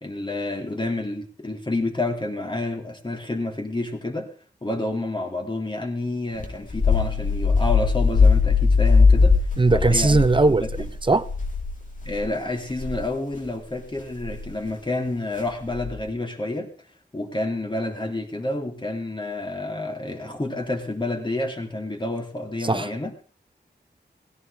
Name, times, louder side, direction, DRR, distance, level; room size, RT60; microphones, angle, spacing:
voice 1, 0.0-4.3 4.6-9.4 9.7-10.7 12.0-16.9 17.1-23.1, left 2 dB, 25° left, 3.4 m, -29 dB
sound 1, 6.4-12.3 12.7-13.0 14.2-14.5 15.7-16.1, left 4 dB, 45° left, 3.8 m, -20 dB
voice 2, 9.6-11.3 22.6-22.9, right 3 dB, 25° right, 0.9 m, -20 dB
18.0 x 17.0 x 3.6 m
wide cardioid pair, 105°, 18 cm